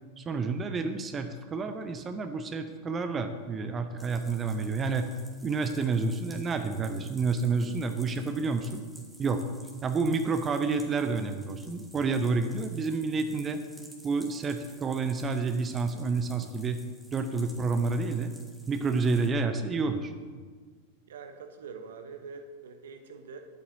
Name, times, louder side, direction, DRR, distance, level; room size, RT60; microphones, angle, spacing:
voice 1, 0.2-5.1 5.4-8.8 9.2-9.5 9.8-13.6 14.0-16.8 17.1-18.3 18.7-20.1, right 4 dB, 25° right, 8 dB, 0.6 m, -29 dB
sound 1, 4.0-19.3, right 1 dB, 10° right, 1.7 m, -54 dB
voice 2, 21.1-23.5, right 5 dB, 65° right, 7 dB, 0.9 m, -44 dB
11.5 x 7.9 x 2.7 m, 1.5 s
figure-of-eight pair, 90°, 0 cm